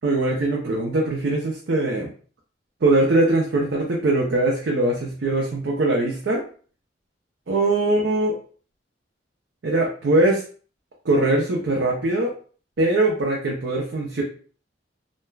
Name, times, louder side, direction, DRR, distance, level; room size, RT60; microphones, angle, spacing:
voice 1, 0.0-2.1 2.8-6.4 7.5-8.3 9.6-10.4 11.0-12.3 12.8-14.2, right 2 dB, 70° right, -1 dB, 0.5 m, -21 dB
3.2 x 2.1 x 2.2 m, 0.42 s
head